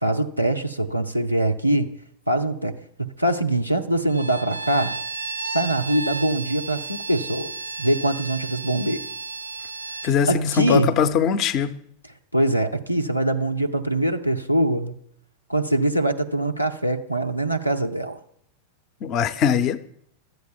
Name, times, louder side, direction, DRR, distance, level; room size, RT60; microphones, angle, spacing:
voice 1, 0.0-1.9 2.3-5.0 5.5-7.5 7.8-9.0 10.3-10.9 12.3-15.0 15.5-18.2, right 1 dB, 90° left, 0.8 m, -23 dB
Bowed string instrument, 4.1-10.2, right 4 dB, 80° right, 0.5 m, -33 dB
voice 2, 10.0-11.8 19.0-19.8, left 7 dB, 35° left, 0.6 m, -21 dB
12.5 x 8.0 x 7.0 m
figure-of-eight pair, 90°, 0 cm